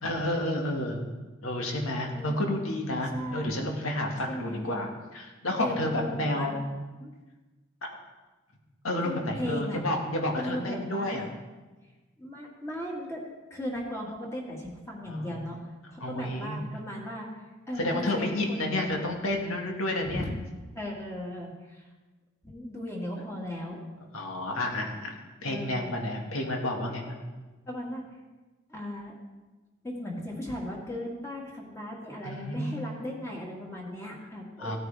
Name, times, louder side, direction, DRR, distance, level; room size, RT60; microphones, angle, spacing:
voice 1, 0.0-1.1 1.4-6.6 7.8-7.9 8.8-11.3 15.1-15.3 16.0-16.6 17.8-20.3 24.1-25.2 25.4-27.2 32.2-32.9 34.6-34.8, left 1 dB, 85° left, 1 dB, 1.9 m, -30 dB
voice 2, 2.1-2.7 3.1-3.6 4.3-4.7 5.6-6.6 7.0-7.1 9.0-9.8 10.4-11.3 12.2-13.2 13.5-15.6 15.9-17.3 17.7-18.9 20.1-20.3 20.7-21.8 22.4-23.8 25.5-25.9 27.7-28.0 28.7-29.1 29.8-34.8, left 1 dB, 15° left, -3 dB, 2.0 m, -37 dB
16.5 x 9.3 x 3.5 m, 1.2 s
head